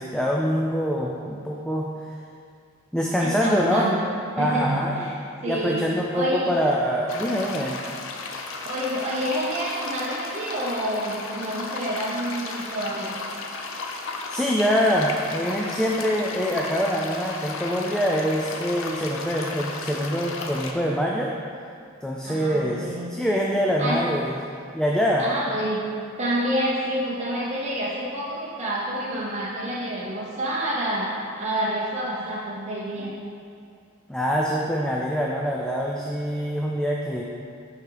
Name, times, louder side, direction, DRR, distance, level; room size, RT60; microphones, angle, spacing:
voice 1, 0.0-1.9 2.9-3.9 4.4-5.1 5.5-7.8 14.3-21.3 22.0-24.3 24.7-25.3 34.1-37.2, equal, 5° left, -3 dB, 0.3 m, -24 dB
voice 2, 3.2-4.1 4.4-5.1 5.4-5.8 6.1-6.6 8.6-13.2 22.2-23.2 23.8-24.0 25.2-25.8 26.2-31.1 31.4-33.1, right 1 dB, 35° right, -6 dB, 0.7 m, -28 dB
sound 1, 7.1-20.7, left 3 dB, 75° left, 0.5 m, -34 dB
5.5 x 4.7 x 3.9 m, 2.4 s
head